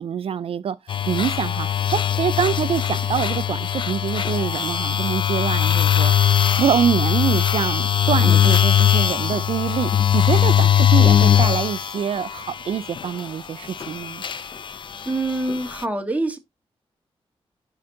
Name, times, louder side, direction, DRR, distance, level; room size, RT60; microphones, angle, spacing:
voice 1, 0.0-6.1 6.6-14.2, right 8 dB, 65° right, 0.4 m, -25 dB
sound 1, 0.9-13.3 13.6-15.8, left 9 dB, 50° left, 0.5 m, -20 dB
voice 2, 15.0-16.4, right 2 dB, 15° right, 1.8 m, -25 dB
11.0 x 4.4 x 3.8 m
wide cardioid pair, 100°, 10 cm